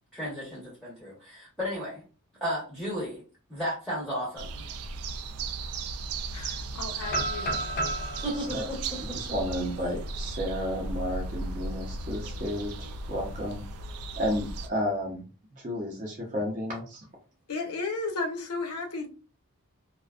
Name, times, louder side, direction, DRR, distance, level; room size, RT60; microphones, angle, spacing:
voice 1, 0.1-2.0 2.4-3.2 3.5-4.6 8.2-9.2, equal, ahead, 0.7 m, -34 dB
sound 1, 4.4-14.7, right 3 dB, 80° right, 0.3 m, -36 dB
voice 2, 6.3-7.6 17.5-19.1, left 3 dB, 85° left, 0.6 m, -34 dB
sound 2, 7.0-10.9 11.4-11.5 11.9-12.2 13.6-14.4, right 1 dB, 40° left, 0.4 m, -35 dB
voice 3, 9.2-13.6 14.2-15.2 15.6-17.1, equal, 35° right, 0.6 m, -32 dB
2.4 x 2.2 x 2.3 m
head